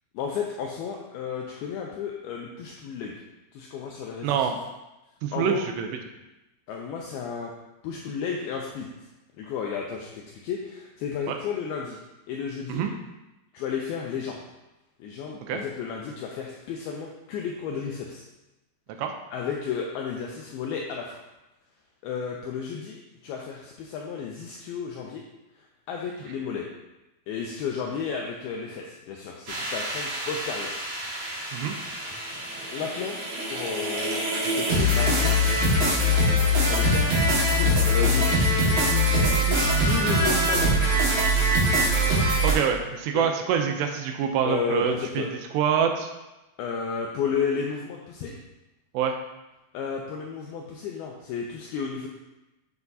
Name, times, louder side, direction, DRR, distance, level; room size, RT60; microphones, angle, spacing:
voice 1, 0.1-3.1 3.5-4.4 5.3-5.6 6.7-7.5 7.8-8.9 9.4-12.0 12.3-12.9 13.5-14.4 15.0-18.2 19.3-21.2 22.0-25.2 25.9-26.7 27.3-30.8 31.2-31.6 32.7-33.2 33.5-35.4 36.6-38.8 39.0-41.0 43.2-43.3 44.5-45.3 46.6-48.3 49.7-52.1, left 6 dB, 90° left, 0 dB, 2.2 m, -33 dB
voice 2, 4.2-4.6 5.2-5.9 11.3-11.4 12.7-12.9 15.5-15.6 19.0-19.1 31.5-31.8 42.4-45.2 45.5-46.1 48.9-49.2, right 8 dB, 80° right, 4 dB, 2.7 m, -25 dB
sound 1, 29.5-42.5, equal, 50° right, 2.0 m, -23 dB
7.7 x 7.1 x 2.7 m, 0.99 s
omnidirectional pair, 5.1 m